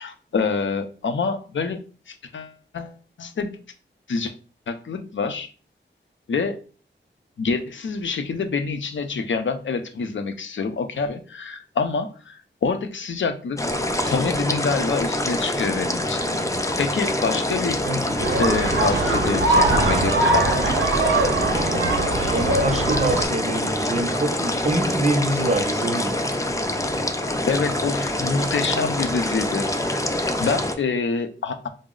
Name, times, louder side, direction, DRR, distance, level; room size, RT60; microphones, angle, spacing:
voice 1, 0.0-3.6 4.1-4.3 4.7-5.5 6.3-6.6 7.4-13.6 14.1-16.3 16.8-17.8 18.4-20.6 27.1-29.7 30.4-31.7, left 4 dB, 75° left, 0.5 m, -26 dB
sound 1, 13.6-30.7, left 1 dB, 15° left, 0.4 m, -25 dB
voice 2, 17.8-18.2 22.3-26.2, right 1 dB, 35° right, 0.5 m, -25 dB
sound 2, 18.2-23.2, right 2 dB, 90° right, 0.7 m, -21 dB
3.9 x 2.0 x 3.7 m
wide cardioid pair, 90°, 20 cm